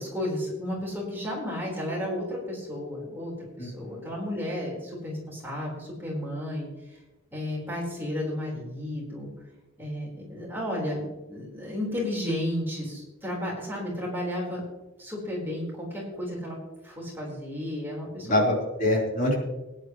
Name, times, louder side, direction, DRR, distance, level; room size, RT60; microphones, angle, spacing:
voice 1, 0.0-6.7 7.3-9.3 9.8-14.6 15.0-16.6 16.8-18.5, left 1 dB, 10° right, -4 dB, 4.2 m, -33 dB
voice 2, 3.6-4.0 18.2-19.4, left 1 dB, 40° left, -3 dB, 3.8 m, -25 dB
20.0 x 10.5 x 3.1 m, 1.1 s
head